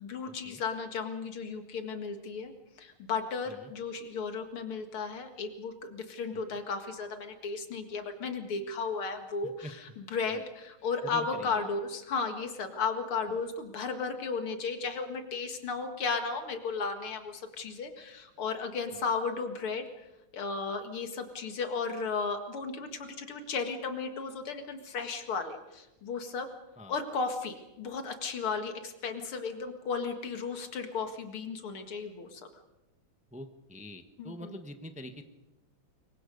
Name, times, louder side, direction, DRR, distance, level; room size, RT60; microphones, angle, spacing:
voice 1, 0.0-2.5 2.8-20.0 20.3-26.5 26.9-32.4 34.2-34.5, left 4 dB, 80° left, 6 dB, 2.8 m, -35 dB
voice 2, 11.0-11.7 13.3-13.4 18.9-19.0 26.8-27.0 33.3-35.2, equal, 5° right, 6 dB, 0.9 m, -45 dB
25.5 x 23.5 x 5.4 m, 0.99 s
omnidirectional pair, 2.3 m